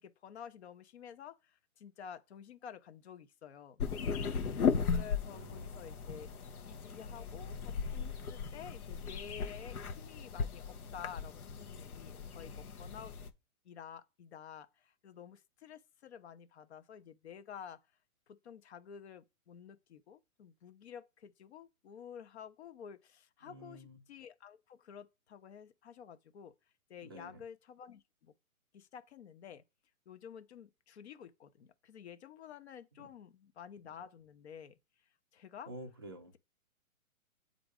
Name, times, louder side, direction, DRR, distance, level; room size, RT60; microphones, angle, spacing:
voice 1, 0.0-3.8 4.9-6.3 6.6-13.2 13.6-17.8 18.3-26.5 26.9-28.3 28.7-29.6 30.1-34.8 35.3-35.7, left 8 dB, 50° left, 0.8 m, -51 dB
sound 1, 3.8-13.3, left 6 dB, 85° left, 0.9 m, -37 dB
voice 2, 5.3-5.7 23.4-24.0 27.0-27.4 33.0-33.1 35.7-36.4, right 1 dB, 20° right, 0.4 m, -50 dB
7.6 x 2.6 x 4.8 m
hypercardioid pair, 145°, 43 cm